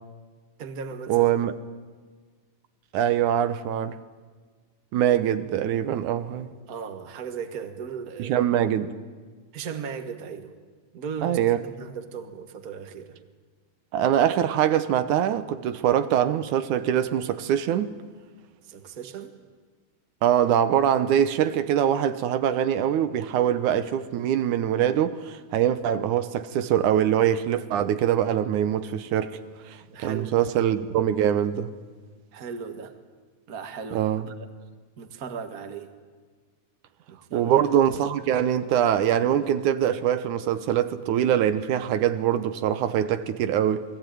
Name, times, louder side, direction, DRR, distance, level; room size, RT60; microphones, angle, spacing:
voice 1, 0.6-1.3 6.7-8.3 9.5-10.5 10.9-13.2 18.7-19.3 29.9-30.5 32.3-32.9 33.5-34.3 35.0-35.9 37.1-37.5, right 6 dB, 35° right, 1.8 m, -37 dB
voice 2, 1.1-1.5 2.9-4.0 4.9-6.5 8.2-8.9 11.2-11.6 13.9-17.9 20.2-29.4 29.7-31.7 33.9-34.2 37.3-43.8, right 10 dB, 80° right, 2.4 m, -23 dB
29.0 x 21.0 x 9.3 m
omnidirectional pair, 3.5 m